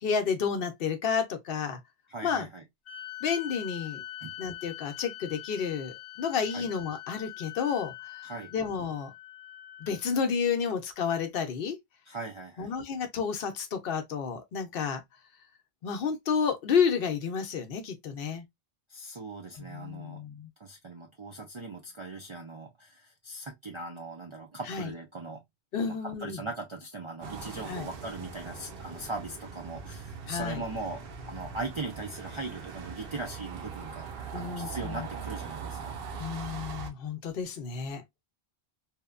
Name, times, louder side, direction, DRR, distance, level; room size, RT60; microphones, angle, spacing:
voice 1, 0.0-1.8 2.2-2.5 3.2-4.0 4.4-9.1 9.8-11.8 12.6-15.0 15.8-18.4 19.6-20.5 24.7-24.9 25.7-26.4 27.7-27.9 30.3-30.6 34.3-35.1 36.2-38.0, left 6 dB, 65° left, 0.8 m, -31 dB
voice 2, 2.1-2.6 4.2-4.3 6.5-6.7 8.2-8.5 12.1-12.7 18.9-20.2 20.6-25.4 25.9-34.1 34.3-35.9, right 3 dB, 50° right, 0.3 m, -39 dB
sound 1, 2.8-10.3, left 13 dB, 50° left, 0.3 m, -44 dB
sound 2, 27.2-36.9, right 5 dB, 65° right, 0.8 m, -41 dB
3.0 x 2.1 x 2.2 m
omnidirectional pair, 1.0 m